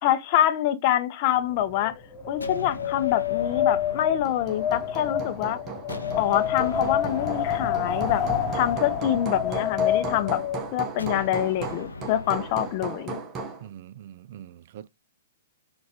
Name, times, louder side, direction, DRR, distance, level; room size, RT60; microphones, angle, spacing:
voice 1, 0.0-1.9 2.3-5.6 6.2-8.2 8.5-10.4 10.7-13.2, left 12 dB, 40° left, 0.6 m, -25 dB
Wind, 1.5-10.7, left 9 dB, 25° left, 1.1 m, -28 dB
sound 1, 2.4-5.4 5.9-10.1 11.0-13.1, left 3 dB, 75° left, 0.6 m, -41 dB
Hammer, 4.0-13.7, right 5 dB, 20° right, 0.8 m, -37 dB
voice 2, 13.6-14.9, right 11 dB, 50° right, 0.3 m, -43 dB
4.2 x 2.5 x 3.6 m
figure-of-eight pair, 115°, 0 cm